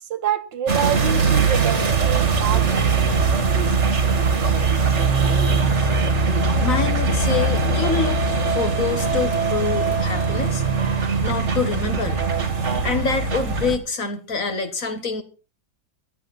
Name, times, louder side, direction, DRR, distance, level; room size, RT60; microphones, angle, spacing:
voice 1, 0.1-2.8, right 9 dB, 70° right, 1.8 m, -26 dB
sound 1, 0.7-13.8, right 4 dB, 40° right, 1.9 m, -21 dB
voice 2, 6.6-8.2 8.5-10.6 11.2-12.3 12.8-15.2, left 5 dB, 45° left, 1.8 m, -26 dB
18.0 x 12.5 x 4.3 m
omnidirectional pair, 2.1 m